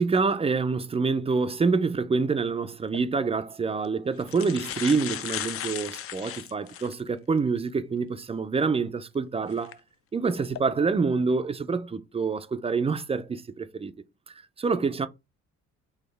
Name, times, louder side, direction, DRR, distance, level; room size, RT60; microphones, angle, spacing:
voice 1, 0.0-9.8 10.1-13.9 14.6-15.1, right 4 dB, 20° right, 0.4 m, -26 dB
sound 1, 2.8-3.0 3.8-3.9 4.2-7.0 7.6-7.7 9.5-9.7 10.3-10.6, left 10 dB, 50° left, 0.4 m, -36 dB
4.2 x 2.7 x 3.3 m
cardioid pair, 90°, 30 cm